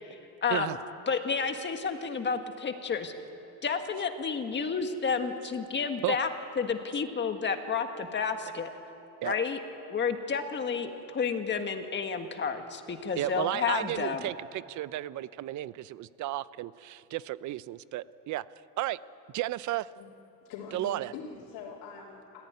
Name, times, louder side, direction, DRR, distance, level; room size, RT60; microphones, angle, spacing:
voice 1, 0.4-0.8 1.1-3.1 3.6-6.3 6.6-8.7 9.2-9.6 9.9-14.3, left 5 dB, 30° left, 6 dB, 1.7 m, -31 dB
voice 2, 13.1-18.4 18.8-19.0 19.3-19.9 20.7-21.1, right 14 dB, 50° right, 17 dB, 0.6 m, -33 dB
voice 3, 20.4-22.4, left 6 dB, 85° left, -5 dB, 3.5 m, -43 dB
26.5 x 15.0 x 9.6 m, 2.9 s
cardioid pair, 145°, 39 cm